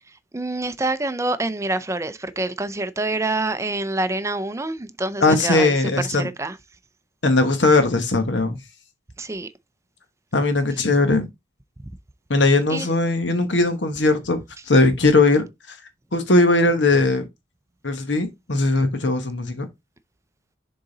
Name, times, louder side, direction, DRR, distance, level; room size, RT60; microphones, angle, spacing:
voice 1, 0.3-5.7 6.0-6.6 9.2-9.5 12.7-12.9, right 2 dB, 15° right, 0.5 m, -26 dB
voice 2, 5.2-6.3 7.2-8.6 10.3-11.3 12.3-14.4 14.7-15.8 16.1-17.3 17.8-19.6, left 2 dB, 70° left, 1.3 m, -19 dB
6.9 x 3.9 x 3.9 m
head